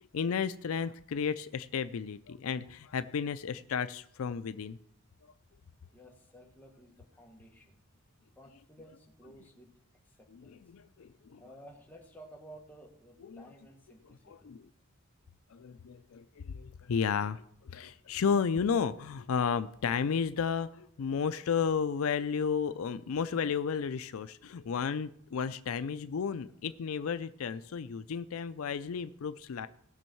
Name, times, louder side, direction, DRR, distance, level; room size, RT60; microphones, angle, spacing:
voice 1, 0.1-4.8 10.3-11.4 13.2-13.4 14.0-14.7 15.5-29.7, left 6 dB, 75° left, 12 dB, 0.4 m, -33 dB
voice 2, 5.9-7.8 8.4-9.7 10.0-10.6 11.4-14.5, right 1 dB, 10° left, 0 dB, 1.7 m, -54 dB
18.0 x 6.3 x 4.6 m, 0.69 s
head